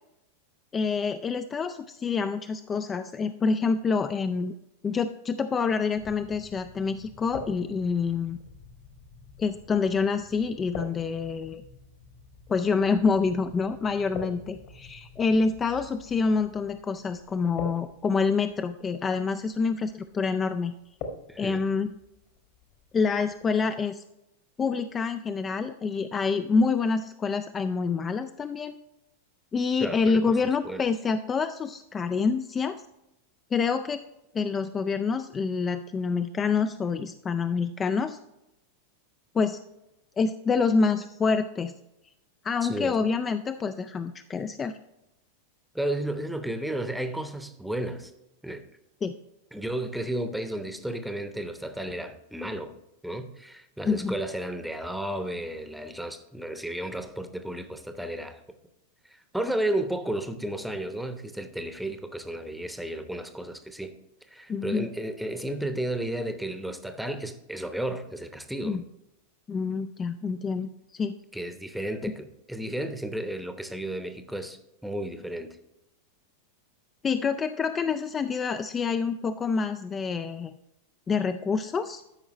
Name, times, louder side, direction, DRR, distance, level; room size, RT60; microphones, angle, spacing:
voice 1, 0.7-4.5 4.8-8.4 9.4-11.6 12.5-20.7 21.4-21.9 22.9-24.0 24.6-28.8 29.5-32.8 33.5-34.0 34.3-38.2 39.3-39.6 40.2-41.7 42.4-44.7 49.0-49.1 53.9-54.1 64.5-64.9 68.6-68.8 69.5-71.1 72.0-72.1 77.0-80.5 81.1-82.0, left 5 dB, 20° left, 10 dB, 0.3 m, -27 dB
sound 1, 6.0-23.6, left 3 dB, 45° left, 1.5 m, -45 dB
voice 2, 21.3-21.7 29.8-30.4 30.6-30.8 42.6-43.1 45.7-48.1 48.4-48.6 49.5-52.7 53.0-58.4 59.1-63.9 64.3-68.8 71.3-75.6, right 1 dB, ahead, 8 dB, 0.8 m, -33 dB
13.0 x 5.4 x 3.1 m, 0.91 s
figure-of-eight pair, 90°, 0 cm